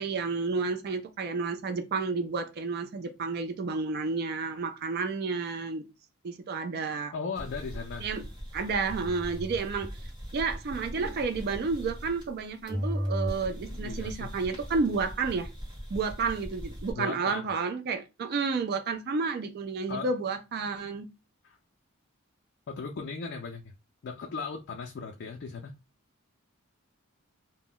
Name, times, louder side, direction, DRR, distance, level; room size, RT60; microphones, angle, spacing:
voice 1, 0.0-5.8 6.2-7.1 8.0-8.2 8.5-15.5 15.9-21.1, right 4 dB, 50° right, 0.3 m, -31 dB
voice 2, 7.1-8.1 13.8-14.3 16.9-17.5 19.9-20.1 21.4-21.6 22.7-23.7 24.0-25.7, left 5 dB, 50° left, 0.4 m, -37 dB
sound 1, 7.3-12.4 12.7-16.9, equal, 20° right, 1.2 m, -38 dB
2.2 x 2.0 x 3.7 m
head